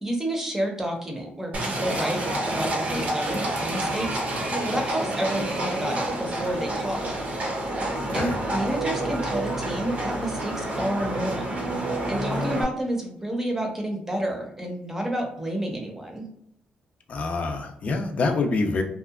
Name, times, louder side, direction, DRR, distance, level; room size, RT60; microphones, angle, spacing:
voice 1, 0.0-2.2 2.5-4.1 4.6-7.1 8.1-16.2, right 1 dB, 10° right, 1 dB, 0.7 m, -30 dB
Livestock farm animals working animals, 1.5-12.6, right 1 dB, 50° right, 0.7 m, -28 dB
voice 2, 17.1-18.8, left 3 dB, 45° left, 5 dB, 0.5 m, -26 dB
2.7 x 2.2 x 2.4 m, 0.71 s
cardioid pair, 100°, 3 cm